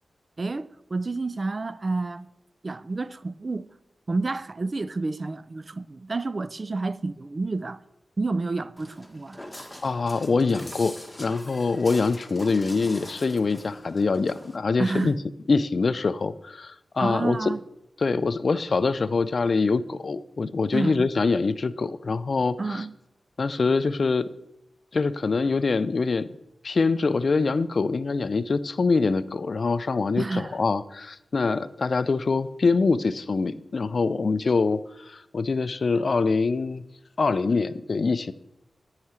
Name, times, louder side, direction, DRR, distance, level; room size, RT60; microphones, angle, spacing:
voice 1, 0.4-2.3 2.6-3.7 4.1-7.8 8.2-9.4 14.8-15.2 17.0-17.6 20.7-21.1 22.6-22.9 30.2-30.6, right 3 dB, 45° right, 0.3 m, -29 dB
Walk footsteps, 8.8-14.6, left 1 dB, 10° left, 1.2 m, -43 dB
voice 2, 9.8-15.1 15.5-17.5 18.0-22.8 23.4-24.3 24.9-26.3 26.6-34.8 35.1-36.8 37.2-38.3, left 4 dB, 60° left, 0.3 m, -24 dB
9.4 x 4.8 x 4.3 m
cardioid pair, 50°, 0 cm